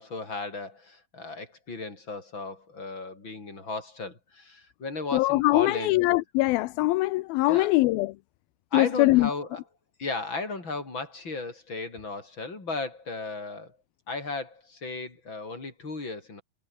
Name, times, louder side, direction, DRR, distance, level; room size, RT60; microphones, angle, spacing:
voice 1, 0.0-5.9 7.5-7.8 8.7-9.6 10.0-13.8 14.1-16.4, left 3 dB, 30° left, 6.6 m, -35 dB
voice 2, 5.1-8.1 8.7-9.3, left 19 dB, 85° left, 2.5 m, -22 dB
omnidirectional pair, 4.2 m